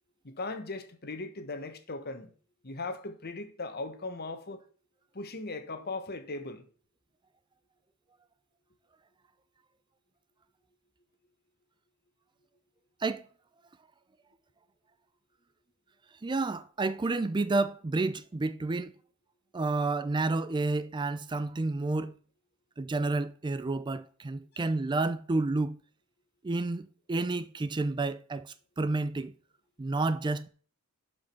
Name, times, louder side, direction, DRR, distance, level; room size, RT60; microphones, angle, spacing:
voice 1, 0.2-2.3 2.6-4.6 5.1-6.7 24.5-24.7, left 3 dB, 45° left, 1.3 m, -38 dB
voice 2, 16.2-18.9 19.5-22.2 22.8-25.8 26.4-29.3 29.8-30.5, right 3 dB, 20° right, 0.4 m, -30 dB
11.5 x 5.1 x 5.8 m
head